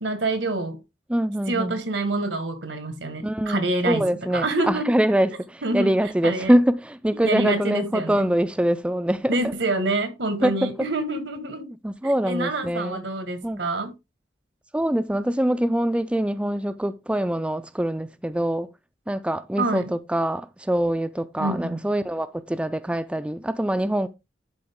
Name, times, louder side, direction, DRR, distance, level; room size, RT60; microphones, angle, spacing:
voice 1, 0.0-0.8 1.5-4.0 4.3-4.9 5.6-6.5 7.2-8.3 9.3-11.7 12.0-13.9 19.6-19.9 21.4-21.8, right 2 dB, 85° right, 1.6 m, -27 dB
voice 2, 1.1-1.8 3.2-9.4 10.4-10.7 11.8-13.0 13.4-13.7 14.7-18.7 19.1-24.1, right 1 dB, 5° right, 0.3 m, -24 dB
11.5 x 3.9 x 3.6 m
head